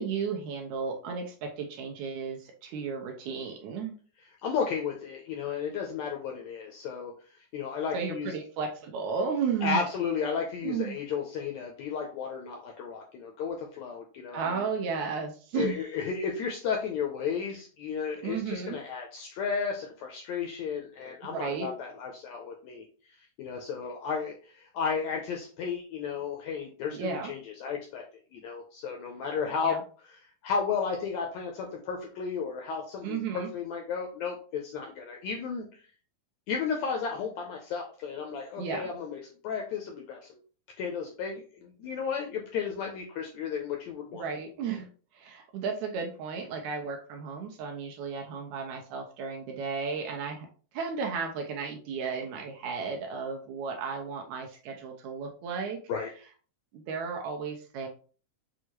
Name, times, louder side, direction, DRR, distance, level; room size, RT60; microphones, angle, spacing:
voice 1, 0.0-4.0 7.9-9.8 10.6-11.0 14.3-15.8 18.1-18.8 21.3-21.7 26.9-27.3 29.6-29.8 33.0-33.5 38.6-38.9 44.1-44.9 45.1-50.5 50.7-55.8 56.7-57.9, right 5 dB, 85° right, 2 dB, 1.7 m, -34 dB
voice 2, 4.4-8.3 9.6-14.7 15.5-22.8 23.2-28.0 28.3-29.8 30.1-30.2 30.4-35.8 36.5-40.4 40.8-44.2 55.9-56.1, left 6 dB, 85° left, 1 dB, 1.5 m, -33 dB
6.3 x 2.3 x 3.0 m, 0.40 s
omnidirectional pair, 3.9 m